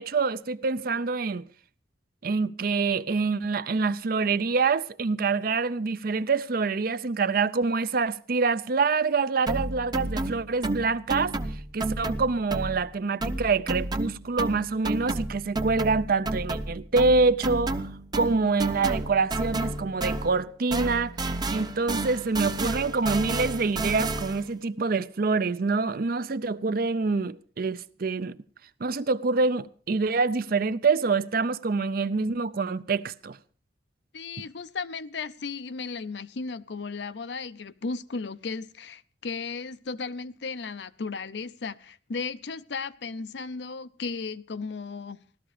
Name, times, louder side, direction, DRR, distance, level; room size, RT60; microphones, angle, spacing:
voice 1, 0.0-1.4 2.2-11.3 11.7-17.9 18.1-21.1 21.5-28.4 28.8-33.4, right 4 dB, 55° right, 0.6 m, -26 dB
sound 1, 9.5-12.9 13.2-20.5 20.7-24.5, right 2 dB, 25° right, 0.7 m, -31 dB
voice 2, 34.1-45.2, left 4 dB, 75° left, 0.6 m, -35 dB
16.0 x 13.0 x 5.0 m
head